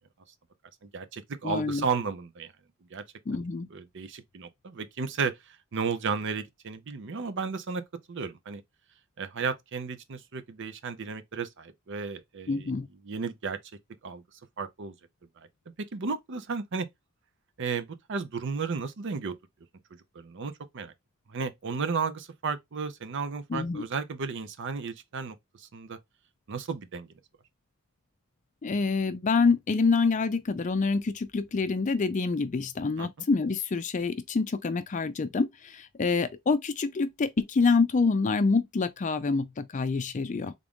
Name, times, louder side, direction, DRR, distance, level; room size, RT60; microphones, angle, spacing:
voice 1, 0.8-2.5 2.9-3.0 3.7-7.8 8.1-8.6 9.2-12.7 13.0-13.6 14.0-14.2 14.6-14.9 15.9-16.9 17.6-19.3 20.1-20.9 21.3-26.0 26.5-27.1 33.0-33.1, right 5 dB, 55° right, 0.5 m, -33 dB
voice 2, 1.4-1.8 3.3-3.7 12.5-12.9 23.5-23.8 28.6-40.5, left 4 dB, 35° left, 0.4 m, -26 dB
3.6 x 2.5 x 3.5 m
head